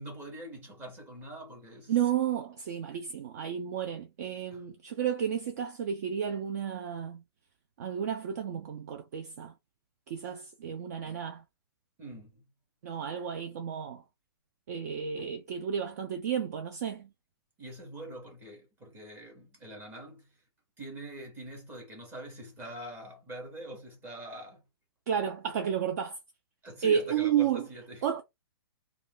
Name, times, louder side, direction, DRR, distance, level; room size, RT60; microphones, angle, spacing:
voice 1, 0.0-2.1 2.9-3.0 4.5-4.6 12.0-12.4 17.6-20.4 20.8-24.6 26.6-28.1, right 1 dB, 15° right, 1.0 m, -44 dB
voice 2, 1.9-7.2 7.8-9.5 10.1-11.4 12.8-14.0 14.7-17.1 25.1-26.2 26.8-27.6 28.0-28.2, right 8 dB, 40° right, 0.4 m, -32 dB
2.4 x 2.2 x 3.5 m
hypercardioid pair, 160°, 13 cm